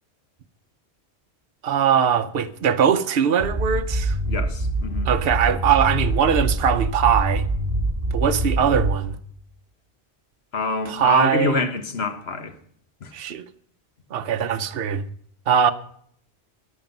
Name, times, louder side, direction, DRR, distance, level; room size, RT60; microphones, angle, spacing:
voice 1, 1.6-4.2 5.0-7.5 8.1-9.2 10.9-11.6 13.1-13.5 14.1-15.0 15.5-15.7, right 8 dB, 60° right, 1.0 m, -21 dB
sound 1, 3.4-9.2, right 1 dB, 40° right, 4.3 m, -25 dB
voice 2, 4.2-5.1 10.5-12.5 13.0-13.1, left 3 dB, 65° left, 1.5 m, -26 dB
13.5 x 10.5 x 5.3 m
omnidirectional pair, 1.1 m